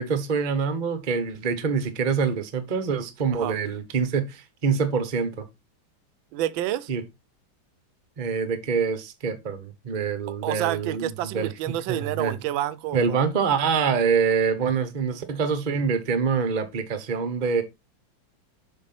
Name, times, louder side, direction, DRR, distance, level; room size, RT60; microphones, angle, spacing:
voice 1, 0.0-5.5 6.9-7.0 8.2-11.5 11.9-12.3 12.9-17.6, right 6 dB, 30° right, 0.8 m, -25 dB
voice 2, 6.3-6.9 10.4-13.3, right 13 dB, 80° right, 1.3 m, -29 dB
7.4 x 4.5 x 4.2 m
omnidirectional pair, 2.2 m